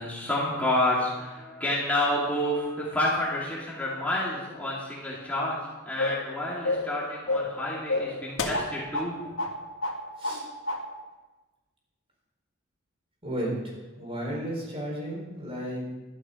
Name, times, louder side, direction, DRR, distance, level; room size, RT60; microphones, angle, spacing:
voice 1, 0.0-9.5, left 1 dB, 10° left, -7 dB, 2.4 m, -29 dB
sound 1, 6.0-6.3 6.6-6.9 7.3-7.6 7.9-9.1 9.4-9.5 9.8-10.4 10.7-10.8, left 2 dB, 80° left, 1.7 m, -29 dB
voice 2, 13.2-15.9, right 1 dB, 30° right, -2 dB, 4.2 m, -33 dB
12.5 x 11.0 x 5.1 m, 1.2 s
head